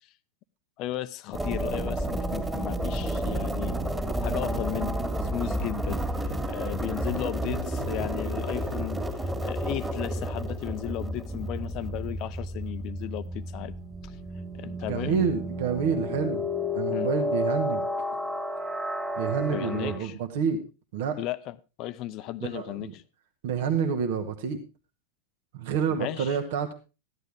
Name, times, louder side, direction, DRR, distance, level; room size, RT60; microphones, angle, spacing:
voice 1, 0.8-3.8 4.2-9.0 9.4-13.7 14.0-14.2 14.5-15.3 16.9-17.1 19.5-20.2 21.2-22.9 25.9-26.4, left 15 dB, 40° left, 0.7 m, -35 dB
sound 1, 1.3-20.0, equal, 10° right, 2.3 m, -31 dB
voice 2, 14.9-16.4 16.7-17.8 19.2-20.6 20.9-21.2 22.4-22.9 23.4-24.6 25.5-26.7, right 6 dB, 50° right, 1.6 m, -28 dB
14.5 x 11.0 x 3.5 m
figure-of-eight pair, 90°, 0 cm